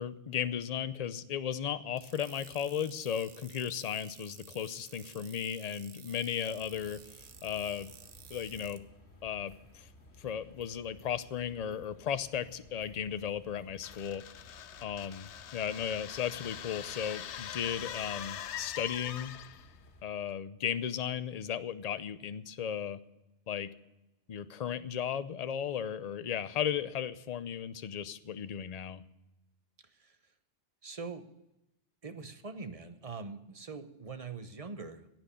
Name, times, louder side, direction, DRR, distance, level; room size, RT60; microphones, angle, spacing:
voice 1, 0.0-7.9 8.3-8.8 9.2-9.9 10.2-14.5 14.8-19.4 20.0-23.0 23.5-23.7 24.3-29.0, left 8 dB, 45° left, 13 dB, 0.6 m, -35 dB
sound 1, 2.0-8.8, right 8 dB, 75° right, 1.1 m, -53 dB
sound 2, 6.5-20.0, left 1 dB, 70° left, 2.0 m, -57 dB
sound 3, 13.8-19.7, left 10 dB, 90° left, 0.9 m, -43 dB
voice 2, 29.8-30.3 30.8-31.3 32.0-35.1, right 4 dB, 35° right, 9 dB, 0.9 m, -43 dB
16.5 x 6.1 x 9.7 m, 0.93 s
omnidirectional pair, 1.1 m